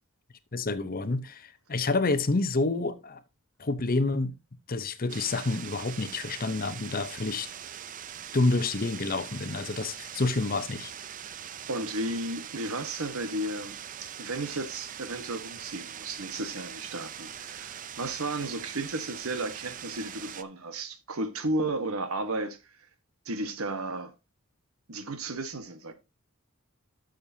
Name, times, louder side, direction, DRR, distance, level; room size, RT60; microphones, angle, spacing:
voice 1, 0.5-3.2 3.6-4.3 4.7-7.5 8.3-10.9, left 3 dB, 40° left, 0.7 m, -28 dB
sound 1, 5.1-20.4, right 9 dB, 35° right, 0.5 m, -42 dB
voice 2, 11.7-22.7 23.2-24.1 24.9-25.9, right 2 dB, 75° right, 1.3 m, -34 dB
12.5 x 6.6 x 2.7 m
head